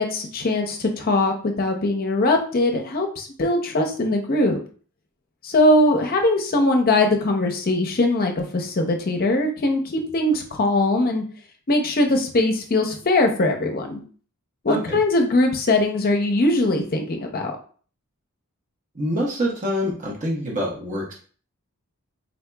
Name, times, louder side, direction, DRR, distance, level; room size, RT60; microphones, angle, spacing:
voice 1, 0.0-4.6 5.4-11.2 11.7-14.0 14.6-17.6, left 2 dB, 45° left, 3 dB, 0.6 m, -21 dB
voice 2, 14.7-15.0 18.9-21.1, equal, 35° right, -3 dB, 0.8 m, -26 dB
4.0 x 2.8 x 2.2 m, 0.42 s
head